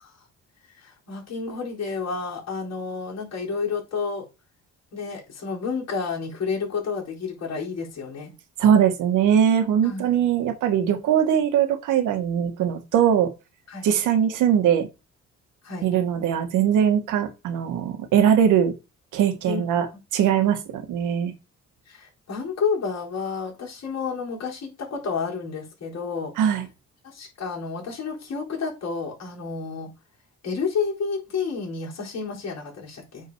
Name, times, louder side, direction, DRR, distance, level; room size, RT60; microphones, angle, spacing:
voice 1, 0.8-4.3 4.9-8.3 9.8-10.1 13.7-13.9 15.6-15.9 19.4-19.6 21.9-26.3 27.0-29.9 30.4-33.3, left 5 dB, 60° left, 4.2 m, -30 dB
voice 2, 8.6-13.3 13.8-14.9 15.8-18.7 19.1-19.9 20.1-21.3 26.4-26.7, right 9 dB, 90° right, 1.7 m, -21 dB
9.1 x 3.9 x 4.7 m
cardioid pair, 90°, 30 cm